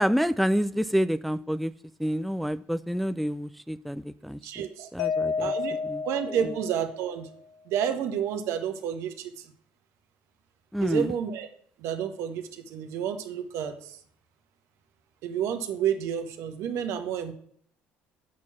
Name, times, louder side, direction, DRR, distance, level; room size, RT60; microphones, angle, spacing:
voice 1, 0.0-1.7 2.0-4.6 4.9-5.5 5.8-6.0 10.7-11.1, equal, ahead, 14 dB, 0.3 m, -28 dB
voice 2, 4.4-4.9 5.4-7.3 7.7-9.5 10.8-11.5 11.8-14.0 15.2-17.3, right 8 dB, 70° right, 7 dB, 1.0 m, -30 dB
Mallet percussion, 5.0-7.3, left 5 dB, 75° left, 0.7 m, -31 dB
7.4 x 4.5 x 5.9 m, 0.62 s
supercardioid pair, 70°, 5 cm